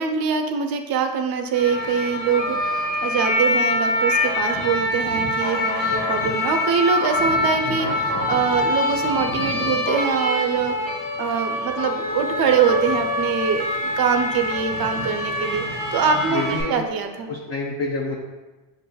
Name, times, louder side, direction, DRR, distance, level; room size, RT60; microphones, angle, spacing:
voice 1, 0.0-10.8 11.2-13.7 14.0-15.7 15.9-17.3, right 6 dB, 50° right, 5 dB, 0.5 m, -23 dB
sound 1, 1.5-16.6, left 1 dB, 90° left, 0.9 m, -24 dB
voice 2, 7.7-8.0 16.3-16.8 17.3-18.2, left 3 dB, 30° left, -1 dB, 0.5 m, -28 dB
6.5 x 2.6 x 2.2 m, 1.2 s
cardioid pair, 100°, 48 cm